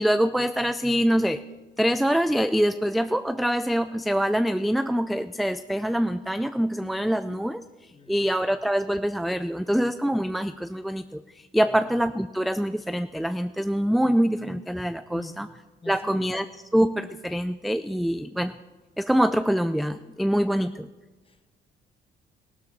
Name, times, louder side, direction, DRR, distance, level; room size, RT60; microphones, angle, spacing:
voice 1, 0.0-1.4 1.8-15.5 15.9-16.5 16.7-18.5 19.0-20.9, equal, ahead, 10 dB, 0.4 m, -25 dB
voice 2, 7.9-8.3 11.6-11.8 15.1-15.5 15.8-16.2 18.0-18.5 21.2-21.6, left 3 dB, 25° left, 7 dB, 1.4 m, -45 dB
16.0 x 12.5 x 4.2 m, 1.2 s
cardioid pair, 90°, 20 cm